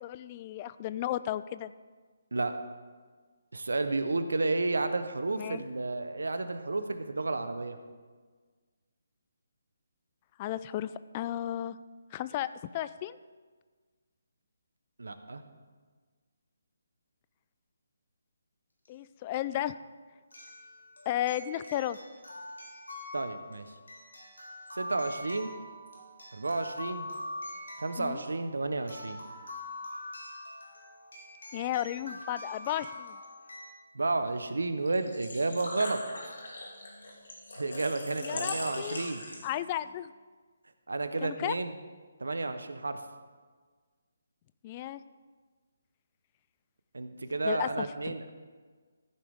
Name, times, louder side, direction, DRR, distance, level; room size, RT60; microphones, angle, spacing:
voice 1, 0.0-1.7 5.3-5.6 10.4-11.8 12.1-13.2 18.9-19.7 21.1-22.0 28.0-28.2 31.5-33.2 38.2-39.0 39.4-40.1 41.2-41.6 44.6-45.0 47.4-48.3, left 12 dB, 30° left, 15 dB, 0.4 m, -34 dB
voice 2, 3.5-7.8 15.0-15.4 23.1-23.7 24.7-25.5 26.3-27.1 27.8-29.2 33.9-36.0 37.5-39.2 40.9-41.7 42.2-43.0 46.9-48.3, right 3 dB, 75° right, 9 dB, 1.0 m, -31 dB
sound 1, 18.9-19.0 20.3-33.7, left 1 dB, 80° left, 3.9 m, -44 dB
Engine / Trickle dribble / Fill (with liquid), 34.9-39.7, left 2 dB, 65° left, 3.1 m, -40 dB
14.5 x 9.9 x 3.6 m, 1.5 s
figure-of-eight pair, 145°, 0 cm